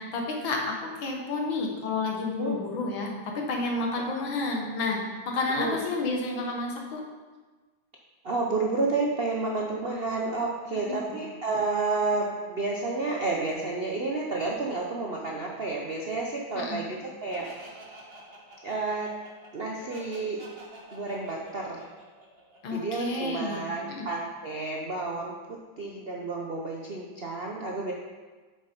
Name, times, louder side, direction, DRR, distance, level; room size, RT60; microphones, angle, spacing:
voice 1, 0.0-5.0 5.3-7.0 10.9-11.2 16.6-16.8 22.6-23.7 24.0-24.1, left 3 dB, 75° left, 0 dB, 2.1 m, -30 dB
voice 2, 8.2-17.8 18.6-19.1 19.5-20.4 20.9-21.8 22.7-27.9, right 3 dB, 55° right, -1 dB, 0.6 m, -30 dB
Laughter, 17.3-23.0, right 1 dB, 35° right, 1.4 m, -48 dB
8.2 x 7.0 x 4.5 m, 1.3 s
omnidirectional pair, 2.2 m